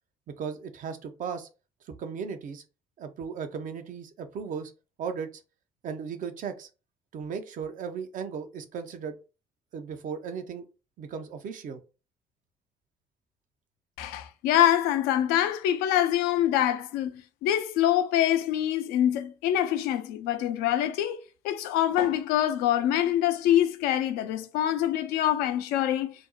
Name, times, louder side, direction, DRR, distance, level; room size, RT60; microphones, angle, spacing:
voice 1, 0.4-1.5 1.9-2.6 3.0-4.7 5.0-5.3 5.8-6.7 7.1-9.2 9.7-10.7 11.0-11.8, right 6 dB, 55° right, 0.6 m, -36 dB
voice 2, 14.0-21.2 21.4-26.1, left 11 dB, 70° left, 0.4 m, -25 dB
2.5 x 2.0 x 3.8 m
hypercardioid pair, 50°, 16 cm